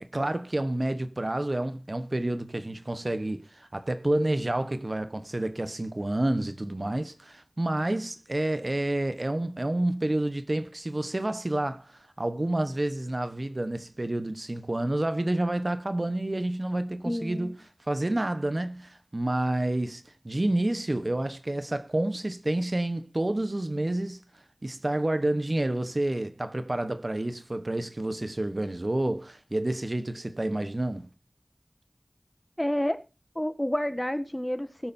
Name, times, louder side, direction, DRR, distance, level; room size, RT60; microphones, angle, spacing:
voice 1, 0.0-17.6 17.9-24.2 24.6-31.1, right 1 dB, 50° right, 1.0 m, -29 dB
voice 2, 17.0-17.5 32.6-33.0 33.3-34.9, equal, 15° left, 1.5 m, -29 dB
21.5 x 8.5 x 2.7 m
wide cardioid pair, 40°, 0 cm